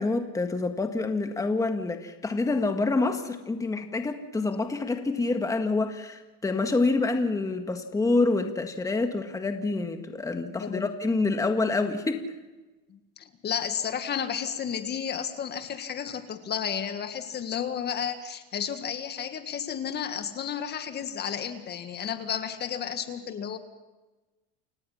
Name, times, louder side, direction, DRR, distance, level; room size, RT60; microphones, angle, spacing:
voice 1, 0.0-12.2, left 3 dB, 10° left, 6 dB, 1.7 m, -27 dB
voice 2, 12.9-23.6, left 8 dB, 35° left, 8 dB, 1.8 m, -32 dB
29.0 x 17.0 x 5.8 m, 1.1 s
supercardioid pair, 125°, 30 cm